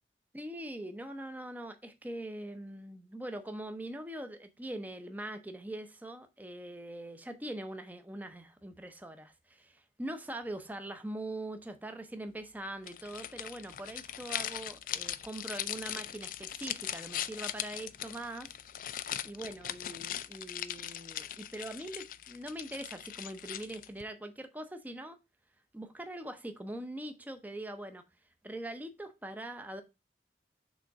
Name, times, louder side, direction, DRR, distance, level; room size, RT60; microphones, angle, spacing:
voice 1, 0.3-18.5 19.2-25.2 25.7-28.0 28.4-29.8, right 1 dB, 10° right, 0.6 m, -42 dB
sound 1, 12.8-24.0, left 11 dB, 50° left, 0.4 m, -40 dB
6.3 x 3.7 x 4.6 m
head